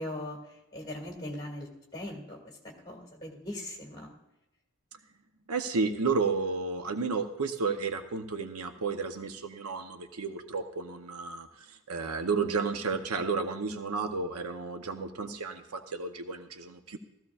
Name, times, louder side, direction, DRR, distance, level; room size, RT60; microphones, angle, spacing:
voice 1, 0.0-4.1, left 1 dB, 20° left, 0 dB, 2.2 m, -40 dB
voice 2, 5.5-17.0, right 4 dB, 80° right, 8 dB, 0.8 m, -32 dB
15.5 x 14.0 x 2.4 m, 0.92 s
head